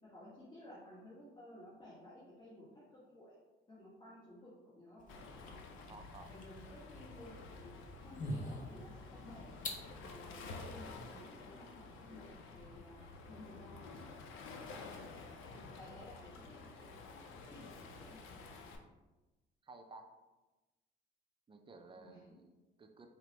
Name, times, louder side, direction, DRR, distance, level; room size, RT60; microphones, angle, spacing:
voice 1, 0.0-3.4 3.7-5.1 6.3-9.5 10.0-13.9 15.5-18.2 21.9-22.3, left 1 dB, 25° left, -9 dB, 1.3 m, -55 dB
sound 1, 5.0-11.1, left 1 dB, 40° left, 0.6 m, -48 dB
Waves surf, 5.1-18.8, left 3 dB, 85° left, 0.5 m, -51 dB
voice 2, 5.9-6.3 14.7-15.0 19.6-20.1 21.5-23.1, right 3 dB, 25° right, 4 dB, 0.5 m, -55 dB
4.6 x 2.1 x 2.9 m, 1.1 s
cardioid pair, 90°, 20 cm